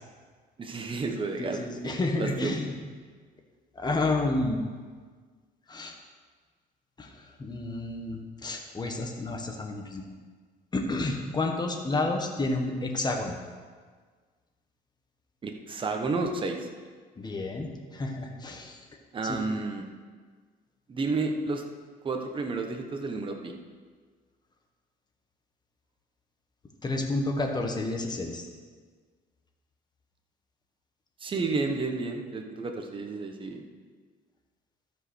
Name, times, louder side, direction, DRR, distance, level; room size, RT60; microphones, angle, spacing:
voice 1, 0.6-2.5 15.4-16.7 19.1-19.8 20.9-21.6 22.0-23.5 31.2-33.6, right 3 dB, 30° right, 3 dB, 1.2 m, -31 dB
voice 2, 1.4-2.7 3.7-4.6 5.7-6.0 7.0-7.1 7.4-10.0 10.7-13.3 17.2-18.8 19.2-19.4 26.8-28.5, left 2 dB, 25° left, 3 dB, 1.5 m, -30 dB
13.5 x 5.3 x 6.4 m, 1.5 s
cardioid pair, 110°, 17 cm